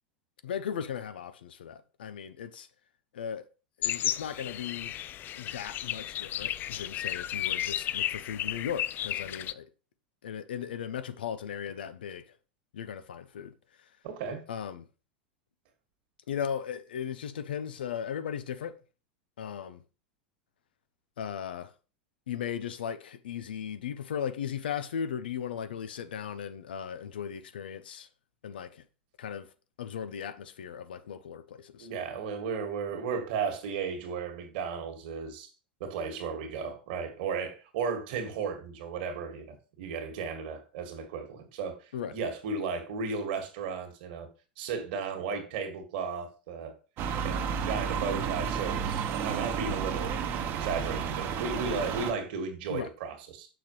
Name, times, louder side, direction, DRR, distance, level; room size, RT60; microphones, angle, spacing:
voice 1, 0.4-2.7 3.1-3.4 3.8-4.9 5.3-9.7 10.2-12.2 12.7-13.5 14.5-14.9 16.3-18.7 19.4-19.8 21.2-21.7 22.3-28.1 28.4-28.8 29.2-29.5 29.8-31.9 41.9-42.2 52.7-52.9, left 8 dB, 80° left, 0.8 m, -37 dB
sound 1, 3.8-9.5, left 12 dB, 40° left, 0.4 m, -33 dB
voice 2, 14.0-14.4 31.8-35.5 35.8-41.8 42.1-44.3 44.6-46.7 47.2-53.5, right 5 dB, 65° right, 2.0 m, -35 dB
sound 2, 47.0-52.1, right 7 dB, 45° right, 1.2 m, -32 dB
7.0 x 6.3 x 3.2 m
hypercardioid pair, 90°, 5 cm